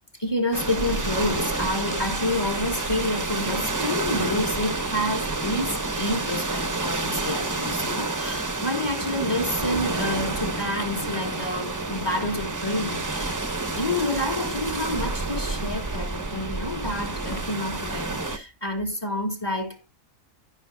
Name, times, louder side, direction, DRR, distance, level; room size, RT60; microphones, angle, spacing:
voice 1, 0.2-13.4 13.7-19.9, left 1 dB, 20° left, 1.9 m, -29 dB
sound 1, 0.5-18.4, right 3 dB, 20° right, 0.6 m, -29 dB
14.5 x 5.8 x 2.3 m
omnidirectional pair, 1.4 m